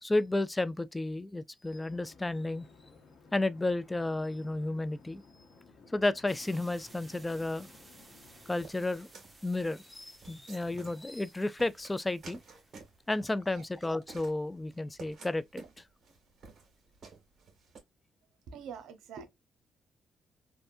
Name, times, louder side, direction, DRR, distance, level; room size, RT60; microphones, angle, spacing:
voice 1, 0.0-2.7 3.3-5.2 5.9-7.7 8.5-9.1 9.4-12.4 13.1-15.6, left 2 dB, 15° left, 0.3 m, -32 dB
sound 1, 1.7-8.6, left 4 dB, 55° left, 1.2 m, -57 dB
sound 2, 6.3-13.1, right 2 dB, 15° right, 1.1 m, -57 dB
sound 3, 8.6-17.8, right 4 dB, 55° right, 1.8 m, -53 dB
voice 2, 18.5-19.3, right 6 dB, 80° right, 0.9 m, -45 dB
3.4 x 2.6 x 2.5 m
cardioid pair, 90°, 0 cm